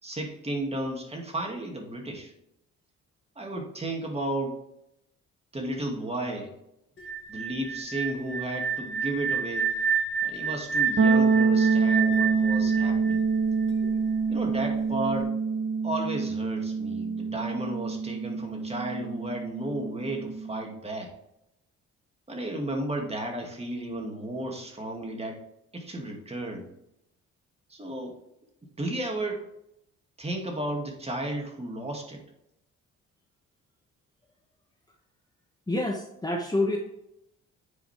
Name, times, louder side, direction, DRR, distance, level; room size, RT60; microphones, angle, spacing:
voice 1, 0.0-2.3 3.4-4.6 5.5-6.5 7.3-9.7 10.2-13.2 14.3-15.3 15.8-21.1 22.3-25.4 25.7-26.7 27.7-28.2 28.8-29.5 30.2-32.2, right 1 dB, 20° right, 1 dB, 2.2 m, -33 dB
sound 1, 7.0-13.9, right 6 dB, 40° left, 1.4 m, -29 dB
sound 2, 11.0-20.7, right 5 dB, 40° right, 1.1 m, -26 dB
voice 2, 35.7-36.8, left 2 dB, 15° left, 1 dB, 1.1 m, -27 dB
9.3 x 5.0 x 3.5 m, 0.80 s
cardioid pair, 90°, 30 cm